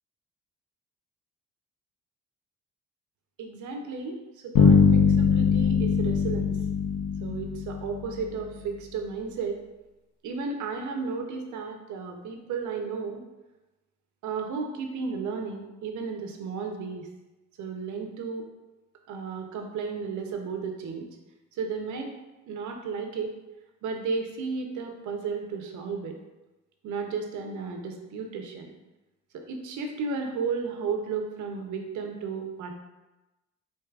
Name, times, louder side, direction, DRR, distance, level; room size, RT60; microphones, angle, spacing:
voice 1, 3.4-4.2 4.4-6.5 7.2-9.6 10.2-13.2 14.2-17.1 17.6-18.5 19.1-21.1 21.6-22.1 22.5-23.3 23.8-26.1 26.8-28.7 29.3-32.8, right 5 dB, 75° right, 3 dB, 0.6 m, -33 dB
sound 1, 4.6-8.3, left 6 dB, 90° left, 0.6 m, -21 dB
4.6 x 2.7 x 2.3 m, 1.1 s
cardioid pair, 90°, 30 cm